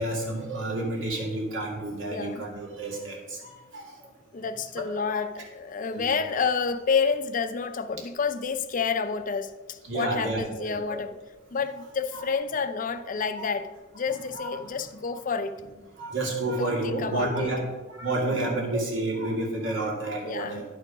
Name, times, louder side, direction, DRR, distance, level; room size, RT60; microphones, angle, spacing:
voice 1, 0.0-3.9 4.7-5.2 5.9-6.1 9.9-11.0 12.1-12.2 14.3-14.6 16.0-17.6 17.9-20.6, right 2 dB, 80° right, -2 dB, 2.1 m, -30 dB
voice 2, 2.1-2.4 4.3-11.2 11.5-15.6 16.6-17.5 20.2-20.6, left 5 dB, 45° left, 10 dB, 0.5 m, -29 dB
10.5 x 4.5 x 4.9 m, 1.2 s
head